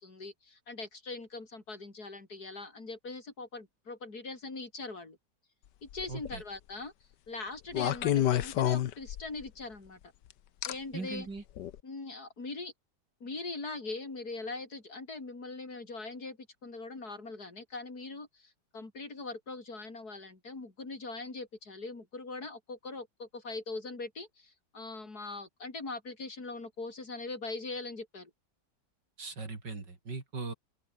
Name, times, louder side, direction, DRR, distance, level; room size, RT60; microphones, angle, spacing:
voice 1, 0.0-5.2 5.8-6.9 7.3-10.0 10.6-11.3 11.8-12.7 13.2-28.3, left 3 dB, 60° left, 4.7 m, -41 dB
sound 1, 5.9-6.4 7.7-9.5 10.6-10.7 11.6-11.8, left 11 dB, 85° left, 1.5 m, -29 dB
voice 2, 6.1-6.4 10.9-11.4 29.2-30.5, right 3 dB, 85° right, 4.8 m, -39 dB
open air
omnidirectional pair, 1.8 m